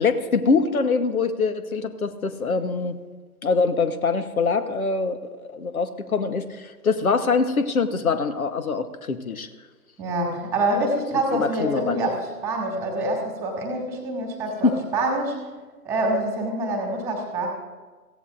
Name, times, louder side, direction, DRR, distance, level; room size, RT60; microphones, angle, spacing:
voice 1, 0.0-3.0 3.4-5.2 5.5-9.5 11.1-12.0 14.6-14.8, left 4 dB, 60° left, 10 dB, 1.3 m, -24 dB
voice 2, 10.0-15.4 15.8-17.5, right 1 dB, 5° right, 0 dB, 2.2 m, -26 dB
23.0 x 15.5 x 2.6 m, 1.3 s
figure-of-eight pair, 130°, 48 cm